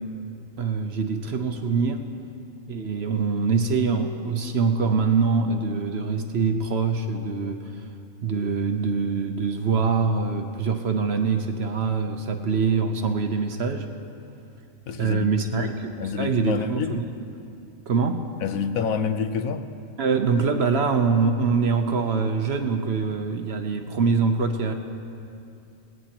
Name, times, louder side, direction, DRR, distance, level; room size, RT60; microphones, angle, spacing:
voice 1, 0.6-2.0 2.7-7.7 8.2-13.9 15.0-17.0 17.9-18.2 20.0-24.7, right 5 dB, 55° right, 5 dB, 0.9 m, -24 dB
voice 2, 14.9-15.7 16.0-17.0 18.4-19.6, left 6 dB, 75° left, 9 dB, 1.1 m, -28 dB
19.0 x 16.5 x 2.9 m, 2.6 s
omnidirectional pair, 1.5 m